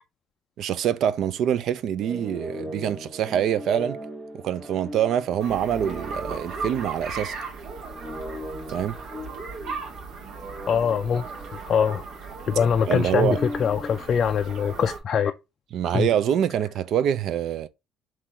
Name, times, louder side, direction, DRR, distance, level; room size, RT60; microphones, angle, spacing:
voice 1, 0.6-4.0 4.3-7.4 8.7-9.0 12.9-13.4 15.7-17.7, right 9 dB, 55° right, 0.4 m, -25 dB
sound 1, 2.0-7.5 7.9-12.4 12.9-14.0, equal, 5° right, 0.9 m, -39 dB
sound 2, 5.4-15.0, right 4 dB, 70° right, 1.5 m, -37 dB
voice 2, 10.7-11.3 11.7-12.0 12.5-15.3 15.9-16.1, left 7 dB, 35° left, 0.3 m, -23 dB
3.8 x 3.1 x 4.2 m
cardioid pair, 155°, 0 cm